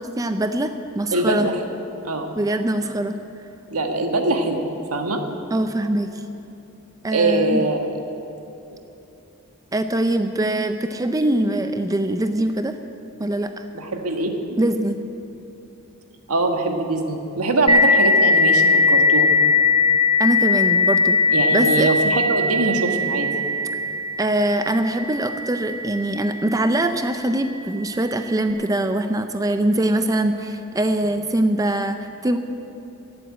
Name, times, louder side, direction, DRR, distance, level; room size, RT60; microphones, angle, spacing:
voice 1, 0.0-1.5 2.3-3.1 5.5-6.1 7.0-7.6 9.7-12.8 13.2-13.7 14.6-15.0 20.2-21.2 21.5-21.9 24.2-32.0 32.2-32.4, right 1 dB, 15° right, 8 dB, 0.5 m, -22 dB
voice 2, 1.1-1.5 2.0-2.3 3.7-4.6 4.9-5.2 7.1-7.9 13.7-14.3 16.3-19.3 21.3-23.3, right 2 dB, 80° right, 4 dB, 1.5 m, -22 dB
sound 1, 17.7-26.9, left 3 dB, 25° left, 0.9 m, -19 dB
15.5 x 7.8 x 8.9 m, 2.9 s
head